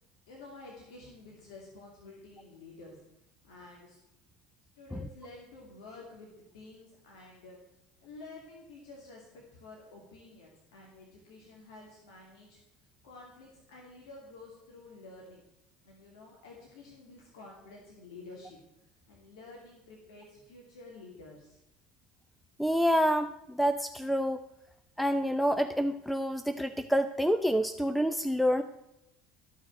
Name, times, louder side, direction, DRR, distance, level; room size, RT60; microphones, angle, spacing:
voice 1, 0.3-3.0 3.4-4.0 4.7-6.3 6.5-7.6 8.0-15.4 15.8-18.6 19.1-21.6, left 3 dB, 85° left, -1 dB, 2.6 m, -50 dB
voice 2, 22.6-24.4 25.0-28.6, equal, ahead, 10 dB, 0.6 m, -27 dB
13.5 x 6.3 x 7.8 m, 0.87 s
supercardioid pair, 85°, 3 cm